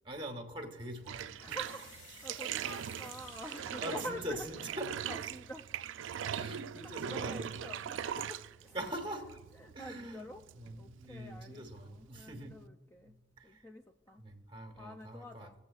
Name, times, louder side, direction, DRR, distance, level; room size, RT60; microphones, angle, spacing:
voice 1, 0.0-1.6 3.8-4.9 6.3-7.5 8.7-9.4 9.7-10.3 10.5-12.5 13.0-13.6 14.2-15.5, right 1 dB, 25° right, 5 dB, 1.1 m, -43 dB
Bathtub (filling or washing), 1.0-12.7, right 9 dB, 75° right, 0.3 m, -41 dB
voice 2, 1.4-4.5 5.1-5.7 6.1-6.4 6.8-8.8 9.1-10.4 10.8-13.2 13.4-14.2 14.8-15.5, equal, 15° left, 4 dB, 0.3 m, -47 dB
sound 1, 1.6-6.4, left 3 dB, 75° left, 1.9 m, -57 dB
17.5 x 7.2 x 2.4 m, 1.1 s
head